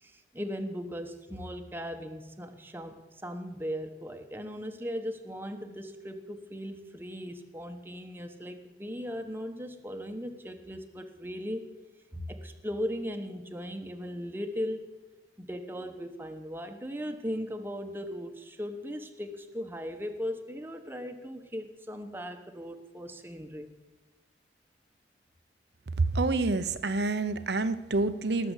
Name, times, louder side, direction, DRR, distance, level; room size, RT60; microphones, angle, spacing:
voice 1, 0.0-11.7 12.1-14.9 15.4-23.7, equal, 10° right, 6 dB, 1.1 m, -38 dB
voice 2, 26.0-28.5, right 3 dB, 70° right, 13 dB, 0.8 m, -27 dB
18.5 x 6.8 x 8.2 m, 1.1 s
head